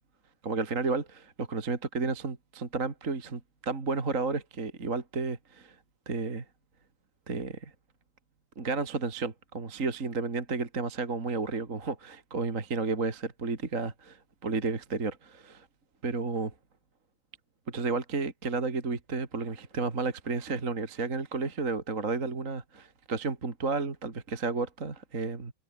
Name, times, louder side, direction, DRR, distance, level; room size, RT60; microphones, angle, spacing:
voice 1, 0.4-5.8 6.1-6.4 7.3-7.7 8.6-15.7 16.0-16.5 17.7-25.5, right 3 dB, 25° right, 2.1 m, -32 dB
omnidirectional pair, 4.9 m